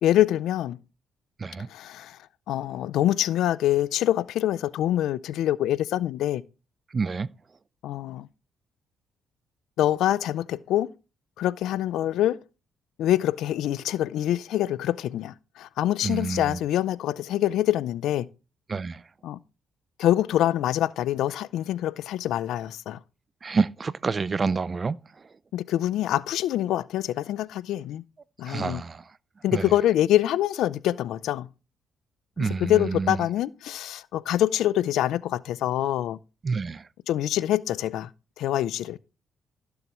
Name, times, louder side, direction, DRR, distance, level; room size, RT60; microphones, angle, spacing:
voice 1, 0.0-0.8 1.7-2.2 2.5-6.4 7.8-8.3 9.8-10.9 11.4-12.4 13.0-18.3 19.2-19.4 20.0-23.0 25.5-28.0 28.4-28.8 29.4-31.5 32.4-36.2 37.1-38.1 38.4-39.0, left 12 dB, 85° left, 0.5 m, -25 dB
voice 2, 6.9-7.3 16.0-16.6 18.7-19.0 23.4-25.0 28.5-29.0 29.5-29.7 32.4-33.2 36.4-36.8, right 4 dB, 35° right, 0.5 m, -28 dB
15.0 x 7.1 x 3.0 m
cardioid pair, 90°, 0 cm